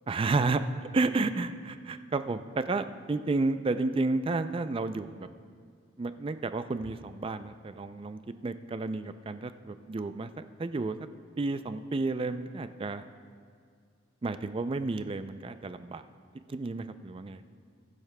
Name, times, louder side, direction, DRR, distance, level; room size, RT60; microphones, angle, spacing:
voice 1, 0.1-0.6 0.9-5.3 6.0-11.0 11.4-13.0 14.2-16.0 16.5-17.4, right 3 dB, 25° right, 11 dB, 0.3 m, -31 dB
21.5 x 10.5 x 2.2 m, 2.1 s
head